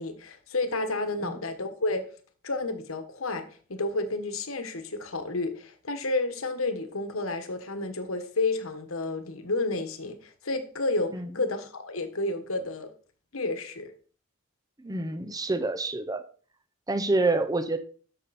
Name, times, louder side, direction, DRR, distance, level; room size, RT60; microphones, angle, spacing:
voice 1, 0.0-2.1 2.4-12.9 13.3-13.9, left 2 dB, 80° left, 1.5 m, -31 dB
voice 2, 14.8-16.2 16.9-17.8, right 2 dB, 15° right, 0.7 m, -27 dB
11.5 x 6.9 x 4.3 m
head